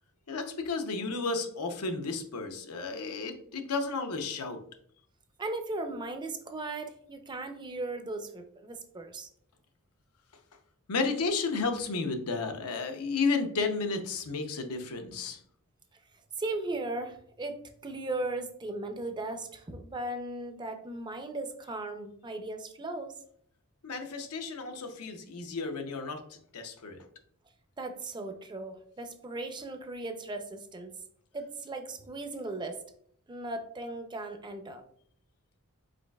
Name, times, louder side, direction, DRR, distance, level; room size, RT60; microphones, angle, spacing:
voice 1, 0.3-4.6 10.9-15.4 23.8-27.0, left 4 dB, 80° left, 6 dB, 0.7 m, -32 dB
voice 2, 5.4-9.3 16.4-23.1 27.8-30.9 31.3-32.8 33.3-34.8, right 2 dB, 20° right, 6 dB, 0.4 m, -37 dB
5.1 x 3.9 x 2.2 m, 0.64 s
head